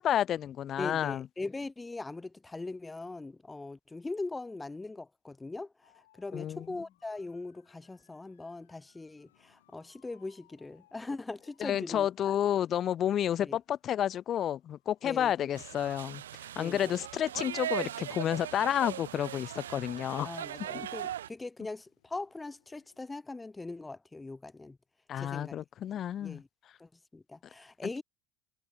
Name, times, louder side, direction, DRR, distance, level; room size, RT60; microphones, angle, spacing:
voice 1, 0.0-1.3 6.3-6.7 11.6-16.2 16.6-20.3 20.7-20.9 25.1-26.4, left 10 dB, 45° left, 0.4 m, -30 dB
voice 2, 0.8-5.7 6.2-12.3 13.4-13.6 15.0-15.5 16.6-17.0 20.2-24.8 25.2-25.6 26.2-26.5 26.8-28.0, left 3 dB, 15° left, 1.4 m, -41 dB
sound 1, 5.8-23.0, left 14 dB, 85° left, 5.8 m, -71 dB
sound 2, 15.5-21.3, right 11 dB, 90° right, 0.4 m, -39 dB
hypercardioid pair, 80°, 0 cm